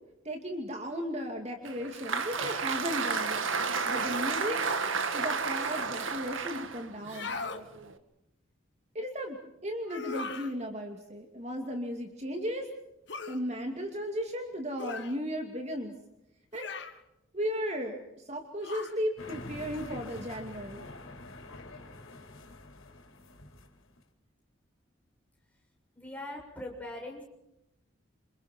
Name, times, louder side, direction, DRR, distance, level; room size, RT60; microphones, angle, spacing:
voice 1, 0.2-3.5 3.9-4.6 5.1-7.4 8.9-9.4 9.6-12.7 13.3-16.0 16.5-16.7 17.3-20.9, equal, 30° right, 3 dB, 2.5 m, -35 dB
Applause, 1.6-8.0, right 5 dB, 75° right, 2.0 m, -32 dB
sound 1, 7.0-7.6 9.9-10.5 13.1-13.4 14.8-15.2 16.5-17.0 18.6-19.0, left 4 dB, 55° left, 1.9 m, -39 dB
sound 2, 19.2-24.0, left 2 dB, 90° left, 4.6 m, -46 dB
voice 2, 25.9-27.3, left 1 dB, 5° left, 0 dB, 6.9 m, -41 dB
28.0 x 28.0 x 4.5 m, 0.87 s
head